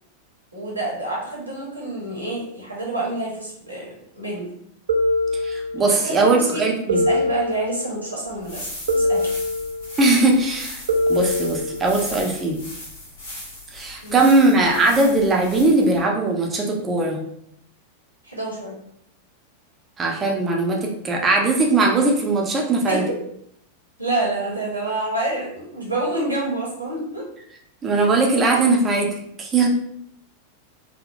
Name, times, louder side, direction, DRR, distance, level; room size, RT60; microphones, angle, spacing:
voice 1, 0.5-3.9 4.2-4.5 6.0-6.6 6.9-9.3 14.0-14.2 18.2-18.7 22.9-23.1 24.0-27.2, right 2 dB, 85° right, -4 dB, 1.0 m, -27 dB
sound 1, 4.9-6.1 6.9-8.1 8.9-10.0 10.9-12.1, left 1 dB, 65° right, 0.4 m, -23 dB
voice 2, 5.4-7.0 10.0-10.8 11.1-12.6 13.7-17.2 20.0-23.0 27.8-29.7, right 2 dB, 20° right, 0 dB, 0.6 m, -19 dB
sound 2, 8.3-16.0, left 1 dB, 60° left, 1.2 m, -38 dB
3.6 x 2.1 x 2.5 m, 0.71 s
figure-of-eight pair, 90°, 0 cm